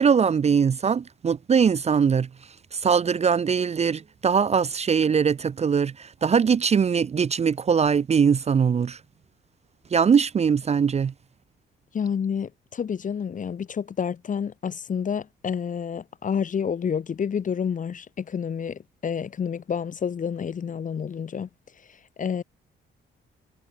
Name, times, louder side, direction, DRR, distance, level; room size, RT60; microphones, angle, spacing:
voice 1, 0.0-2.3 2.7-9.0 9.9-11.1, right 6 dB, 35° right, 0.5 m, -21 dB
voice 2, 11.9-21.5 22.2-22.4, left 7 dB, 40° left, 1.0 m, -29 dB
cardioid pair, 90°, 20 cm